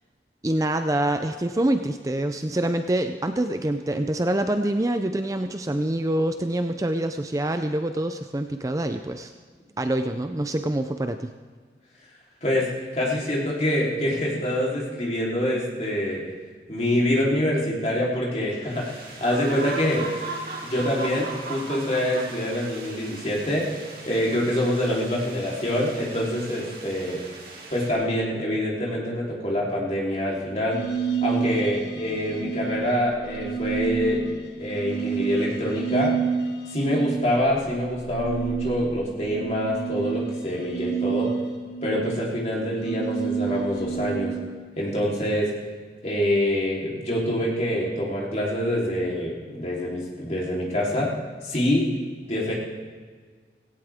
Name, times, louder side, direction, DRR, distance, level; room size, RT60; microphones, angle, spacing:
voice 1, 0.4-9.3 9.8-11.3, right 1 dB, 20° right, 8 dB, 0.4 m, -25 dB
voice 2, 12.9-16.2 16.7-20.1 20.6-23.7 24.1-27.2 27.7-30.8 31.2-34.2 34.6-36.2 36.7-41.3 41.8-44.3 44.8-45.5 46.0-51.1 51.4-51.9 52.3-52.5, left 1 dB, 40° left, -4 dB, 3.5 m, -25 dB
sound 1, 18.7-27.9, right 2 dB, 55° right, 3.2 m, -38 dB
sound 2, 30.7-44.7, right 6 dB, 75° left, 1.5 m, -29 dB
17.0 x 17.0 x 3.6 m, 1.6 s
head